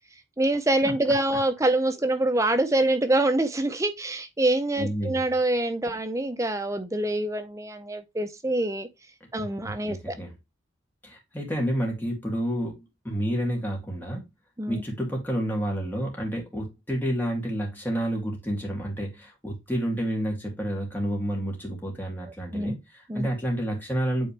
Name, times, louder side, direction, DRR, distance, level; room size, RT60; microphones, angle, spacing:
voice 1, 0.4-8.9 9.3-10.1 14.6-14.8 22.2-22.8 23.1-23.3, right 1 dB, 15° right, 0.5 m, -25 dB
voice 2, 4.8-5.2 9.3-10.3 11.0-12.8 13.0-14.2 14.7-24.3, equal, 10° left, 2.6 m, -29 dB
8.5 x 4.2 x 3.3 m
head